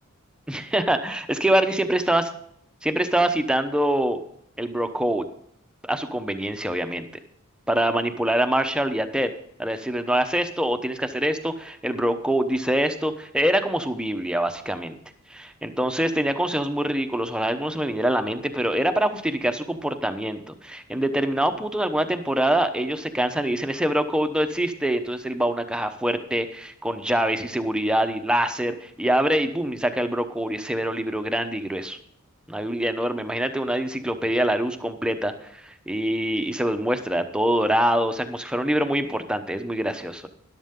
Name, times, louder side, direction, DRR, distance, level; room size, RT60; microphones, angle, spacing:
voice 1, 0.5-2.2 2.8-4.2 4.6-5.2 5.8-7.1 7.7-9.3 9.6-14.9 15.3-32.0 32.5-40.3, right 1 dB, 5° right, 7 dB, 0.9 m, -24 dB
13.0 x 11.5 x 3.7 m, 0.70 s
head